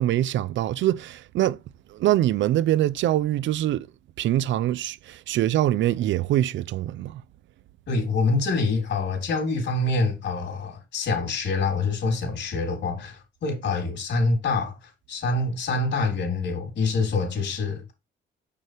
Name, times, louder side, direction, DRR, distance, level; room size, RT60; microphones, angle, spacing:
voice 1, 0.0-1.6 1.9-3.9 4.2-7.2, right 13 dB, 70° right, 0.5 m, -24 dB
voice 2, 7.9-17.9, left 3 dB, 65° left, 3.8 m, -26 dB
6.7 x 6.3 x 3.4 m
cardioid pair, 90°, 20 cm